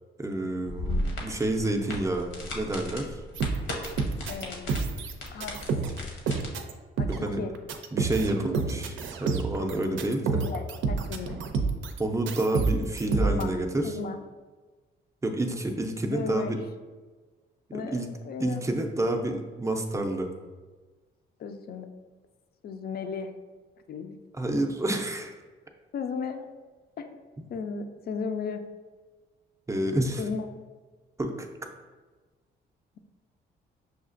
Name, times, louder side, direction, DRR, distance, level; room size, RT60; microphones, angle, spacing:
voice 1, 0.2-3.2 7.1-7.5 7.9-10.4 12.0-14.0 15.2-16.6 17.7-18.1 18.4-20.3 24.3-25.3 29.7-30.2 31.2-31.5, right 1 dB, 15° right, 4 dB, 0.5 m, -29 dB
sound 1, 0.7-6.5, left 1 dB, 75° left, 1.0 m, -36 dB
rock crushes scissors, 3.4-4.4 4.7-6.0 6.3-6.7 7.0-7.3 7.5-12.0 12.3-13.4, right 4 dB, 75° right, 0.5 m, -29 dB
voice 2, 4.3-4.8 5.3-5.6 7.0-7.5 10.3-11.3 13.2-13.6 13.8-14.2 16.0-16.6 17.7-18.6 21.4-21.9 22.6-23.3 23.9-24.2 25.9-26.5 27.0-27.2 27.5-28.6 30.2-30.5, left 5 dB, 50° left, 7 dB, 0.5 m, -35 dB
6.3 x 2.4 x 2.5 m, 1.3 s
cardioid pair, 90°, 20 cm